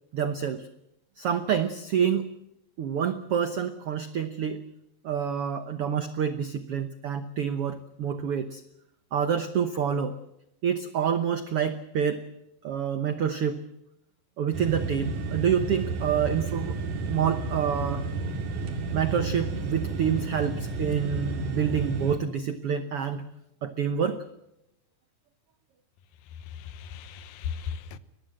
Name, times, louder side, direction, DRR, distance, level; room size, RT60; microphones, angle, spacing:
voice 1, 0.1-0.7 1.2-2.3 2.8-4.6 5.0-8.6 9.1-10.1 10.6-12.2 12.6-13.6 14.4-16.8 17.1-18.0 18.9-23.2 23.6-24.2, right 8 dB, 90° right, 1.2 m, -27 dB
sound 1, 14.5-22.2, right 3 dB, 60° right, 3.7 m, -31 dB
voice 2, 26.4-28.0, left 7 dB, 75° left, 2.6 m, -37 dB
22.5 x 19.5 x 7.7 m
omnidirectional pair, 4.2 m